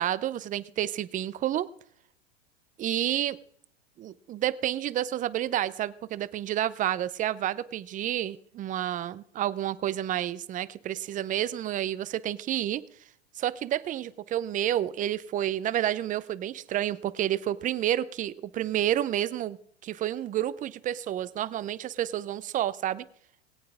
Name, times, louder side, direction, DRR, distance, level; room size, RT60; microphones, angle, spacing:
voice 1, 0.0-1.7 2.8-3.4 4.0-12.8 13.4-23.1, right 12 dB, 25° right, 17 dB, 0.6 m, -30 dB
20.5 x 8.6 x 3.6 m, 0.65 s
hypercardioid pair, 110°, 32 cm